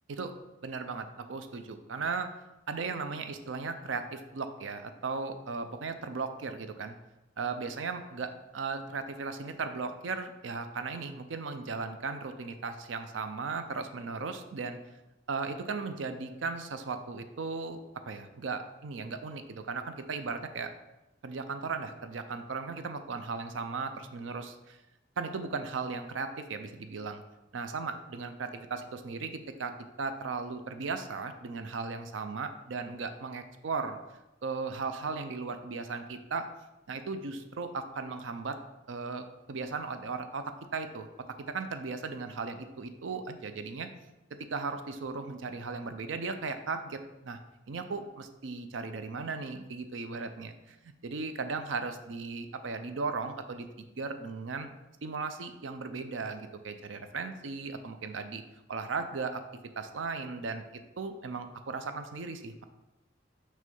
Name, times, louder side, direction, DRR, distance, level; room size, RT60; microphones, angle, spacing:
voice 1, 0.6-2.3 2.7-7.0 7.4-14.8 15.3-17.8 18.1-20.7 21.2-24.8 25.2-27.2 27.5-29.7 30.0-34.0 34.4-36.5 36.9-38.6 38.9-41.1 41.4-43.9 44.4-47.4 47.7-54.7 55.0-58.4 58.7-59.4 59.8-60.6 61.0-62.6, right 4 dB, 90° right, 9 dB, 0.5 m, -36 dB
6.3 x 3.3 x 5.3 m, 0.98 s
head